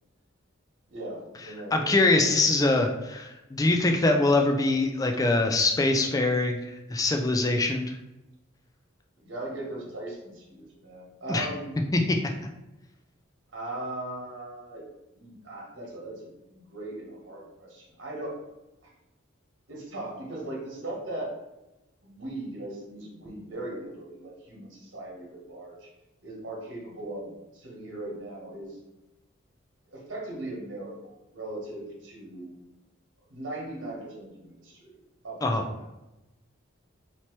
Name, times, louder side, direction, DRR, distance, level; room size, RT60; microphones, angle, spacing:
voice 1, 0.9-1.9 2.1-2.4 9.2-11.7 13.5-14.8 15.1-18.4 19.7-21.3 22.0-25.9 26.2-28.8 29.9-32.5 33.3-35.0 35.2-35.8, right 1 dB, 65° right, -3 dB, 1.3 m, -39 dB
voice 2, 1.7-8.0 11.3-11.5 11.9-12.2 35.4-35.6, left 2 dB, 15° left, 3 dB, 0.3 m, -23 dB
2.9 x 2.9 x 4.5 m, 0.98 s
head